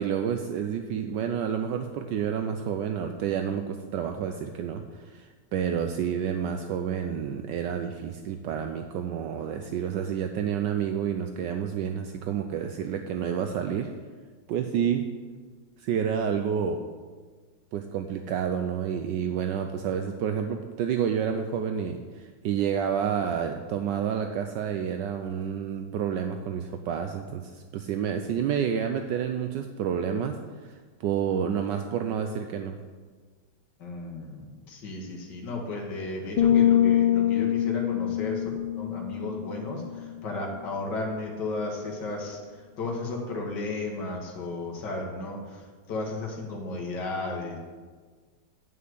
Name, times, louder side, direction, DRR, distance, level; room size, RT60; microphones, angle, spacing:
voice 1, 0.0-13.9 14.5-15.0 15.8-16.8 17.7-30.3 30.6-32.8, right 8 dB, 75° right, 6 dB, 1.2 m, -29 dB
voice 2, 33.8-38.4 38.8-42.4 42.8-45.4 45.9-47.6, left 2 dB, 65° left, -1 dB, 2.2 m, -34 dB
sound 1, 36.4-40.1, left 11 dB, 85° left, 1.5 m, -24 dB
9.5 x 5.7 x 7.8 m, 1.5 s
omnidirectional pair, 2.1 m